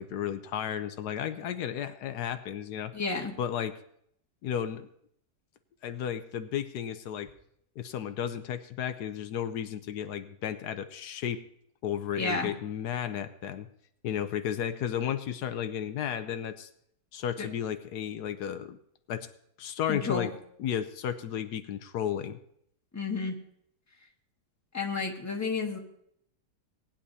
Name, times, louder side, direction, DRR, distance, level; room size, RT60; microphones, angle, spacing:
voice 1, 0.0-2.9 3.4-3.7 4.4-4.9 5.8-7.3 7.8-11.4 11.8-13.7 14.0-16.7 17.1-18.8 19.1-19.3 19.6-20.3 20.6-22.4, left 9 dB, 80° left, 10 dB, 1.2 m, -33 dB
voice 2, 2.9-3.3 12.2-12.5 17.4-17.5 19.9-20.3 22.9-23.3 24.7-25.8, left 4 dB, 10° left, 1 dB, 1.2 m, -31 dB
19.0 x 10.0 x 2.7 m, 0.69 s
omnidirectional pair, 1.7 m